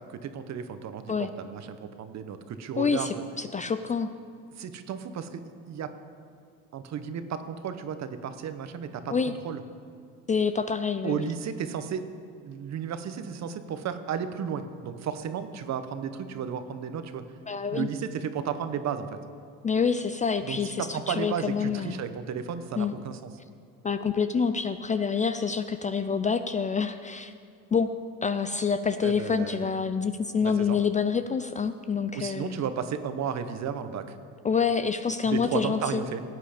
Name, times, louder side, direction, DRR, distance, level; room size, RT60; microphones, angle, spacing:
voice 1, 0.0-3.2 4.6-5.4 5.7-5.9 6.7-9.6 11.0-12.1 12.4-17.2 17.7-19.2 20.4-23.2 29.0-29.7 30.4-30.8 32.1-34.2 35.2-36.2, right 7 dB, 50° right, 10 dB, 1.0 m, -33 dB
voice 2, 2.8-4.1 9.1-9.3 10.3-11.2 17.5-17.9 19.6-22.0 22.8-22.9 23.8-27.3 27.7-27.9 28.2-32.6 34.4-36.0, left 6 dB, 20° left, 10 dB, 0.4 m, -27 dB
17.0 x 8.4 x 5.1 m, 2.2 s
cardioid pair, 105°, 36 cm